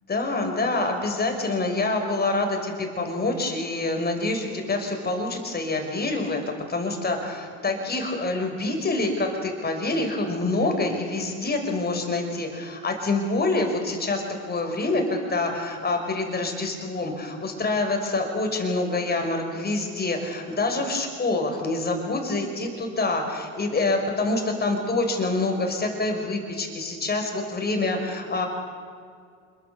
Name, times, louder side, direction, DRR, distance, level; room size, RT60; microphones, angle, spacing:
voice 1, 0.1-28.5, left 2 dB, 25° left, 3 dB, 5.6 m, -26 dB
26.5 x 23.0 x 7.0 m, 2.2 s
hypercardioid pair, 90°, 41 cm